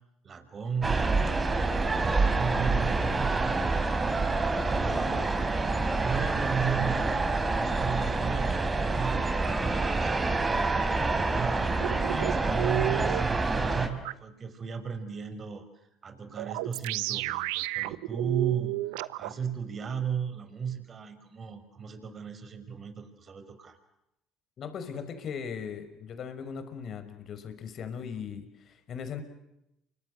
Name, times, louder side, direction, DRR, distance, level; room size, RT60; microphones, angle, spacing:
voice 1, 0.2-3.9 4.3-5.5 6.0-11.7 12.1-23.8, right 7 dB, 40° right, 9 dB, 5.4 m, -36 dB
sound 1, 0.8-13.9, right 3 dB, 25° right, 5.1 m, -27 dB
sound 2, 11.8-13.2 14.0-14.1 16.4-19.3, right 19 dB, 80° right, 1.0 m, -31 dB
voice 2, 24.6-29.2, left 7 dB, 55° left, 9 dB, 5.6 m, -38 dB
29.5 x 25.0 x 8.0 m, 0.85 s
hypercardioid pair, 70°, 0 cm